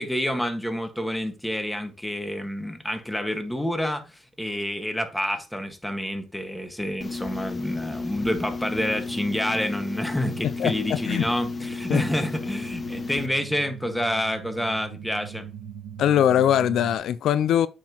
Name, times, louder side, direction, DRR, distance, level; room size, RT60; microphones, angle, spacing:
voice 1, 0.0-15.5, equal, 5° left, 1.6 m, -28 dB
sound 1, 7.0-13.3, left 3 dB, 30° left, 0.9 m, -33 dB
sound 2, 8.5-17.0, right 8 dB, 90° right, 1.2 m, -43 dB
voice 2, 10.6-11.3 11.9-12.0 16.0-17.7, left 10 dB, 75° left, 0.4 m, -21 dB
8.8 x 5.8 x 2.9 m
cardioid pair, 90°, 0 cm